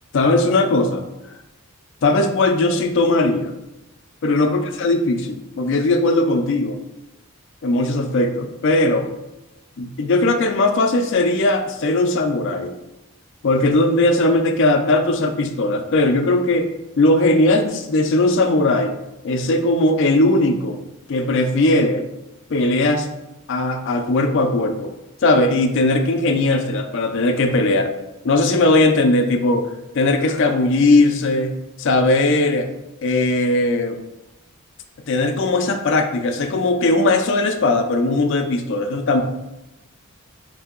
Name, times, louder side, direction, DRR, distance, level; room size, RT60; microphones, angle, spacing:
voice 1, 0.1-1.0 2.0-3.5 4.2-6.8 7.6-9.1 9.8-12.7 13.4-16.7 17.0-18.9 19.2-20.8 21.1-22.1 22.5-23.1 23.5-24.9 25.2-27.9 28.2-29.7 29.9-32.7 33.0-34.0 35.1-39.2, left 2 dB, 55° left, 5 dB, 0.4 m, -18 dB
3.3 x 2.7 x 3.7 m, 0.95 s
head